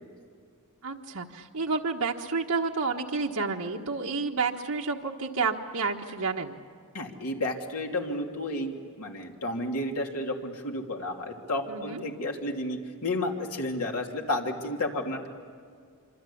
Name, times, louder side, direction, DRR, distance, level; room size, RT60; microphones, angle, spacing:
voice 1, 0.8-6.6 11.7-12.0, right 4 dB, 85° right, 0 dB, 1.4 m, -30 dB
voice 2, 6.9-15.3, left 1 dB, 85° left, 1 dB, 3.0 m, -32 dB
26.5 x 25.5 x 8.7 m, 2.1 s
head